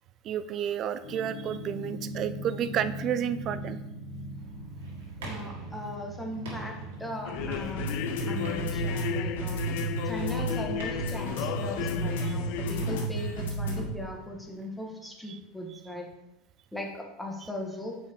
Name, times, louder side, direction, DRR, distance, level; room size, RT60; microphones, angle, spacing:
voice 1, 0.2-3.8 12.2-12.3 15.3-15.4, right 9 dB, 45° right, 13 dB, 0.4 m, -31 dB
sound 1, 1.0-14.1, right 2 dB, 75° left, 1.3 m, -35 dB
sound 2, 4.3-13.6, right 2 dB, 75° right, 2.0 m, -47 dB
voice 2, 5.2-6.7 7.0-7.9 8.3-9.6 10.0-16.1 16.7-18.0, left 1 dB, 5° left, 1 dB, 1.4 m, -38 dB
sound 3, 7.2-13.1, left 10 dB, 60° left, 0.4 m, -34 dB
7.2 x 5.3 x 3.1 m, 0.92 s
hypercardioid pair, 80°, 0 cm